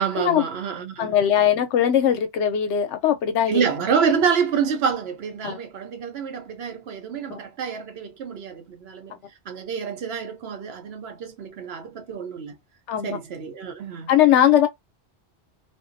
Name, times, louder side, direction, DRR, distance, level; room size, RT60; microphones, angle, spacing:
voice 1, 0.0-1.2 3.5-9.2 9.5-12.5 13.0-14.1, right 6 dB, 65° right, 0.8 m, -27 dB
voice 2, 1.0-3.6 5.4-5.6 7.3-7.4 12.9-13.2 14.1-14.7, left 10 dB, 85° left, 0.9 m, -20 dB
2.5 x 2.0 x 2.5 m
omnidirectional pair, 1.2 m